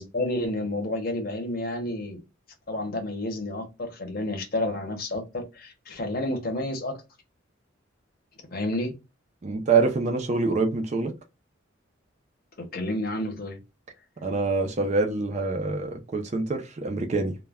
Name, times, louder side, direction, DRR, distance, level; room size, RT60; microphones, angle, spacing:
voice 1, 0.0-2.2 2.7-6.9 8.5-8.9 12.6-13.6, left 1 dB, 50° left, 0.7 m, -30 dB
voice 2, 9.4-11.1 14.2-17.4, right 4 dB, 35° right, 0.4 m, -25 dB
2.1 x 2.1 x 3.4 m
head